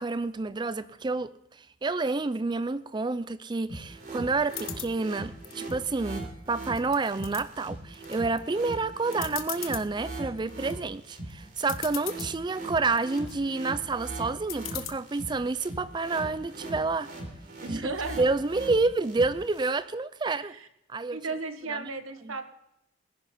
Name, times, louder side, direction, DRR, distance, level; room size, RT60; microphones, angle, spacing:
voice 1, 0.0-17.1 17.7-17.9 18.2-20.5 20.9-21.2 21.7-21.9 22.2-22.4, right 3 dB, 20° right, 0.4 m, -29 dB
sound 1, 3.7-19.7, right 2 dB, 45° right, 3.7 m, -40 dB
sound 2, 4.5-4.9 5.4-6.2 6.6-7.4 7.9-8.4 8.7-8.8 9.1-9.9 10.4-10.7 11.3-11.4 11.6-12.3 12.8-13.4 14.5-14.9, left 13 dB, 85° left, 1.2 m, -38 dB
voice 2, 17.6-18.2 20.4-20.7 21.1-22.5, right 3 dB, 85° right, 1.4 m, -35 dB
19.0 x 11.0 x 4.2 m
head